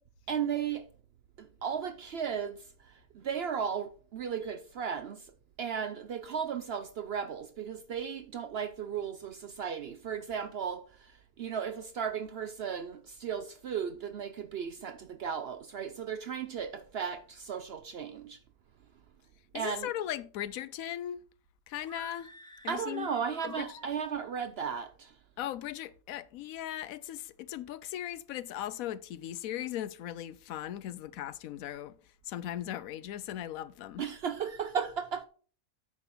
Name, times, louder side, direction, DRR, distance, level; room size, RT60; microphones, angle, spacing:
voice 1, 0.3-0.9 1.4-5.3 5.6-18.4 19.5-19.9 22.7-25.1 34.0-35.2, right 7 dB, 65° right, 0.6 m, -35 dB
voice 2, 19.5-21.2 21.7-22.3 22.6-23.1 23.4-23.8 25.4-31.9 32.3-34.0, left 12 dB, 75° left, 1.0 m, -38 dB
sound 1, 21.8-24.4, left 1 dB, 5° left, 0.5 m, -51 dB
9.0 x 5.8 x 4.2 m
omnidirectional pair, 1.5 m